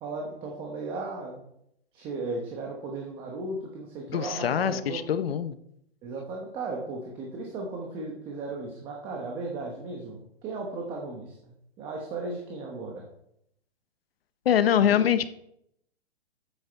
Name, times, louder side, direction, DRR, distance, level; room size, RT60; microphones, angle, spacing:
voice 1, 0.0-1.4 1.9-5.0 6.0-11.5 11.8-13.1 14.8-15.0, right 3 dB, 15° right, 0 dB, 1.0 m, -36 dB
voice 2, 4.1-5.5 14.4-15.3, left 9 dB, 60° left, 13 dB, 0.8 m, -24 dB
9.2 x 8.3 x 4.5 m, 0.75 s
hypercardioid pair, 165°, 33 cm